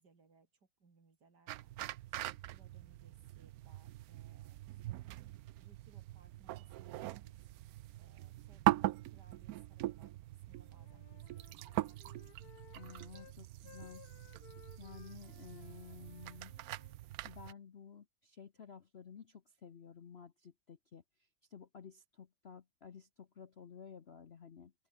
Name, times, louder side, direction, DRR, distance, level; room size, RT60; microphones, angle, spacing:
voice 1, 0.0-1.7 2.2-5.1 5.5-7.3 7.9-11.9, right 4 dB, 60° right, 3.6 m, -67 dB
sound 1, 1.5-17.5, right 15 dB, 80° right, 0.8 m, -41 dB
Wind instrument woodwind instrument, 10.5-13.4 13.6-16.9, left 11 dB, 60° left, 1.3 m, -61 dB
voice 2, 12.7-14.1 14.8-16.6 17.2-24.7, left 7 dB, 45° left, 0.9 m, -53 dB
open air
omnidirectional pair, 2.1 m